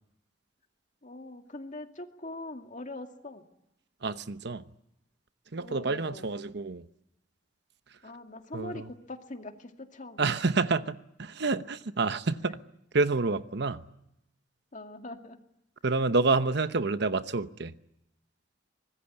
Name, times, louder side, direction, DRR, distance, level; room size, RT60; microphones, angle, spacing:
voice 1, 1.0-3.4 5.6-6.2 8.0-10.3 14.7-15.4, left 2 dB, 40° left, 2.2 m, -42 dB
voice 2, 4.0-4.7 5.5-6.9 8.5-8.9 10.2-12.6 12.9-13.8 15.8-17.7, right 3 dB, 65° right, 1.0 m, -28 dB
24.5 x 20.5 x 9.8 m
head